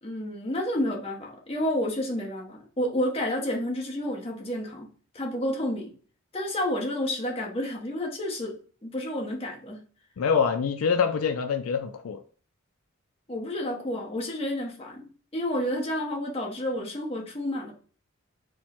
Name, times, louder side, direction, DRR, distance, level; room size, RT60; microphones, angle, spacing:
voice 1, 0.0-4.9 5.1-5.9 6.3-8.6 8.8-9.8 13.3-17.7, left 1 dB, 25° left, 0.8 m, -30 dB
voice 2, 10.2-12.2, left 6 dB, 70° left, 0.4 m, -25 dB
4.3 x 2.1 x 4.3 m
head